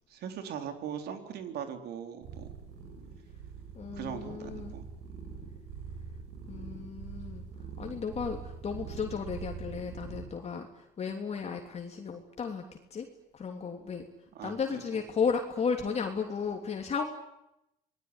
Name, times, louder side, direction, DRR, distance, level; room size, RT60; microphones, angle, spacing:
voice 1, 0.1-2.5 3.9-4.8 14.3-14.5 14.9-15.0, right 8 dB, 70° right, 7 dB, 4.0 m, -39 dB
sound 1, 2.2-10.2, right 6 dB, 90° right, 7.4 m, -43 dB
voice 2, 3.7-4.8 6.5-7.5 7.8-10.7 11.0-12.6 12.9-13.1 13.3-14.0 14.4-17.0, left 6 dB, 40° left, 3 dB, 3.1 m, -34 dB
27.0 x 20.0 x 10.0 m, 0.84 s
cardioid pair, 110°, 17 cm